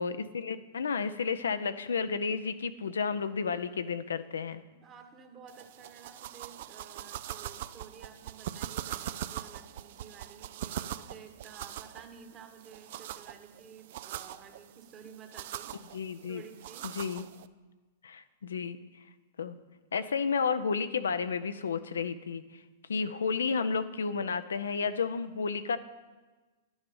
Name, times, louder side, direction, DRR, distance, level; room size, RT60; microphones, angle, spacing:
voice 1, 0.0-4.6 15.9-16.4 16.8-17.3 18.0-18.8 19.4-19.6 19.9-22.4 22.9-25.8, left 5 dB, 80° left, 11 dB, 0.5 m, -32 dB
voice 2, 4.7-15.7 16.3-16.9, right 6 dB, 30° right, 6 dB, 1.4 m, -52 dB
sound 1, 5.5-17.5, right 12 dB, 60° right, 0.4 m, -42 dB
10.5 x 7.1 x 5.4 m, 1.3 s
hypercardioid pair, 110°, 0 cm